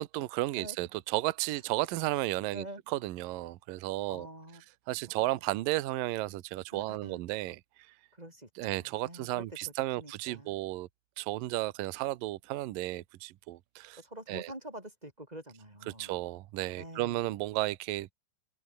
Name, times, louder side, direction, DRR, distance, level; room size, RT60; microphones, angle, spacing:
voice 1, 0.0-4.3 4.9-7.6 8.6-10.9 11.2-14.0 14.3-14.5 15.9-18.1, right 17 dB, 80° right, 2.1 m, -33 dB
voice 2, 4.1-4.6 6.7-7.2 8.1-10.6 14.0-16.1 16.8-17.3, right 1 dB, 10° right, 4.2 m, -46 dB
omnidirectional pair, 5.4 m